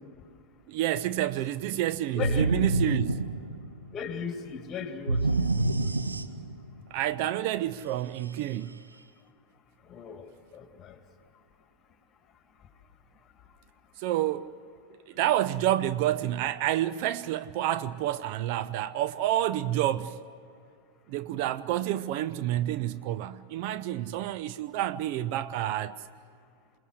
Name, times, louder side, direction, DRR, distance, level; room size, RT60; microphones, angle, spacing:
voice 1, 0.7-3.2 6.9-8.7 14.0-14.5 15.1-20.2 21.1-26.0, right 13 dB, 45° right, 0.5 m, -29 dB
voice 2, 2.1-2.5 3.9-5.2 9.9-10.2 10.5-11.0, left 7 dB, 25° left, 2.1 m, -36 dB
sound 1, 2.2-3.9 5.1-6.7, right 2 dB, 80° right, 0.7 m, -27 dB
28.0 x 19.0 x 6.4 m
figure-of-eight pair, 90°, 0 cm